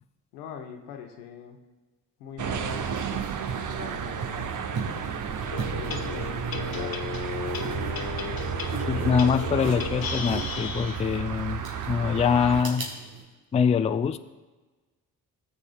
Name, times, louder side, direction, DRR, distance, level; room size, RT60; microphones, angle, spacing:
voice 1, 0.3-1.6 2.2-5.1 5.6-7.1, left 7 dB, 80° left, 4 dB, 1.0 m, -43 dB
sound 1, 2.4-12.6, right 7 dB, 40° right, 0.8 m, -32 dB
sound 2, 2.6-13.2, right 4 dB, 70° right, 2.4 m, -39 dB
sound 3, 5.4-11.2, left 6 dB, 50° left, 1.1 m, -35 dB
voice 2, 8.9-11.6 11.9-12.9 13.5-14.2, left 7 dB, 15° left, 11 dB, 0.4 m, -24 dB
17.5 x 7.1 x 2.3 m, 1.3 s
hypercardioid pair, 45°, 46 cm